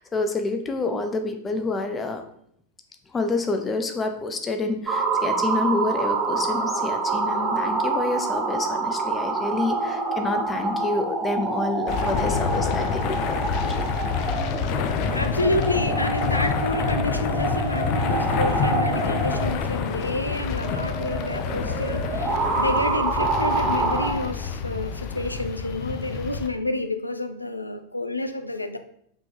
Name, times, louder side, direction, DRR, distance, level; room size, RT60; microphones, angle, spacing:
voice 1, 0.0-2.2 3.1-13.9, left 3 dB, 15° left, 1.1 m, -28 dB
sound 1, 4.9-24.1, right 3 dB, 25° right, 1.5 m, -27 dB
sound 2, 11.9-26.5, left 6 dB, 40° left, 0.7 m, -27 dB
voice 2, 15.1-28.8, left 1 dB, 85° left, 0.7 m, -29 dB
5.9 x 5.5 x 5.6 m
figure-of-eight pair, 90°, 0 cm